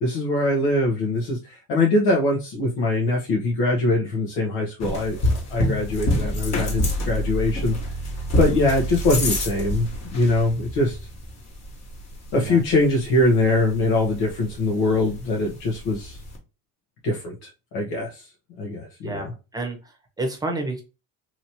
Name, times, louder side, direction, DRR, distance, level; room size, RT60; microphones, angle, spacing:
voice 1, 0.0-5.2 5.5-7.8 8.4-11.0 12.3-16.2 17.0-18.3 18.6-19.3, left 2 dB, 85° left, -1 dB, 1.1 m, -22 dB
sound 1, 4.8-16.4, equal, 35° left, 1.2 m, -28 dB
voice 2, 19.0-20.8, right 2 dB, 10° right, 2 dB, 0.8 m, -30 dB
3.1 x 2.9 x 2.7 m, 0.29 s
cardioid pair, 135°, 48 cm